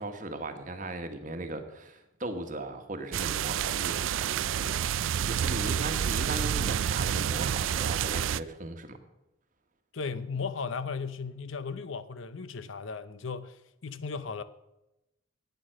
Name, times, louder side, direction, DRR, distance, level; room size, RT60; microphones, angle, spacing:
voice 1, 0.0-4.8 5.2-9.0, right 2 dB, 40° right, 1.3 m, -38 dB
sound 1, 3.1-8.4, right 9 dB, 70° right, 0.4 m, -29 dB
voice 2, 9.9-14.4, left 5 dB, 70° left, 0.7 m, -36 dB
11.0 x 9.2 x 6.3 m
head